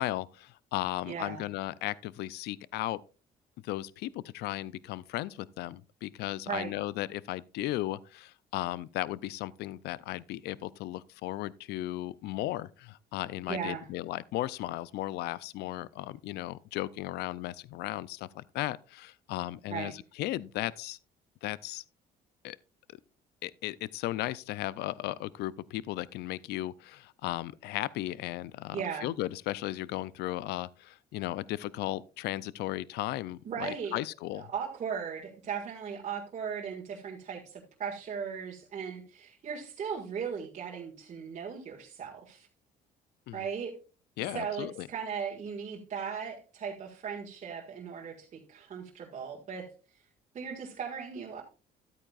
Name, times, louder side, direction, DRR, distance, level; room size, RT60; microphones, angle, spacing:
voice 1, 0.0-3.0 3.6-21.0 21.4-21.8 22.4-22.6 23.4-34.5 43.3-43.5 44.2-44.9, left 16 dB, 75° left, 0.4 m, -36 dB
voice 2, 1.1-1.5 6.5-6.7 13.5-13.9 19.7-19.9 28.7-29.1 33.4-34.0 34.3-42.5 43.3-43.7 44.3-49.7 50.3-51.4, right 7 dB, 45° right, 1.8 m, -37 dB
12.5 x 8.6 x 2.4 m
cardioid pair, 110°, 17 cm